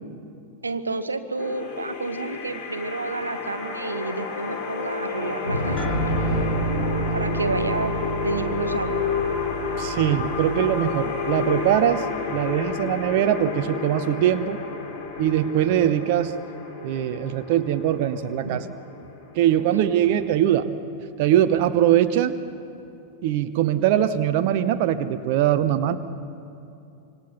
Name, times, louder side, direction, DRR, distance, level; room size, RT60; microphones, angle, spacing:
voice 1, 0.6-6.0 7.1-7.9 8.2-9.0 18.4-18.6, right 3 dB, 80° right, 11 dB, 1.1 m, -30 dB
sound 1, 1.4-20.3, left 5 dB, 45° left, 4.1 m, -31 dB
Thunder, 4.9-13.5 14.2-15.9 17.0-17.1 17.7-17.8 19.6-19.7 21.1-21.2 22.8-22.9, left 1 dB, 85° left, 6.2 m, -35 dB
sound 2, 5.8-12.6, right 4 dB, 25° left, 4.4 m, -31 dB
voice 2, 9.8-12.1 12.3-14.6 15.2-16.3 16.8-18.6 19.3-20.7 21.2-22.3 23.2-26.0, right 11 dB, 45° right, 9 dB, 1.0 m, -21 dB
26.0 x 25.5 x 6.0 m, 2.6 s
figure-of-eight pair, 90°, 0 cm